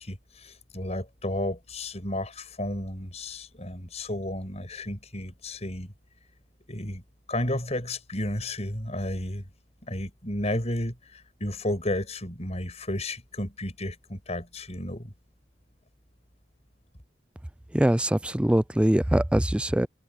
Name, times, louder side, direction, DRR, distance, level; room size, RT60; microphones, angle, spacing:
voice 1, 0.0-5.9 6.7-7.0 7.3-9.5 9.8-15.1, left 1 dB, 35° left, 6.2 m, -32 dB
voice 2, 17.7-19.9, right 1 dB, 5° right, 0.4 m, -22 dB
head